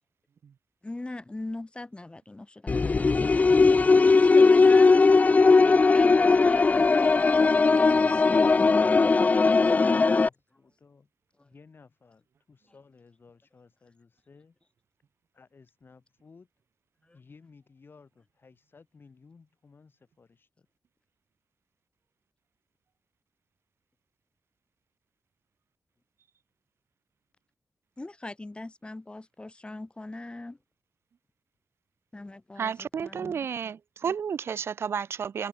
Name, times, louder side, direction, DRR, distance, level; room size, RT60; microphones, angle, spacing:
voice 1, 0.8-5.1 5.9-6.8 7.8-8.6 9.5-10.1 11.4-11.5 17.1-17.2 28.0-30.6 32.1-33.5, left 2 dB, 25° left, 1.3 m, -41 dB
sound 1, 2.7-10.3, left 4 dB, 40° left, 0.4 m, -19 dB
voice 2, 9.7-11.1 11.4-14.6 15.3-16.5 17.1-20.7, left 4 dB, 60° left, 7.5 m, -56 dB
voice 3, 32.6-35.5, right 7 dB, 85° right, 1.1 m, -31 dB
cardioid pair, 60°, 4 cm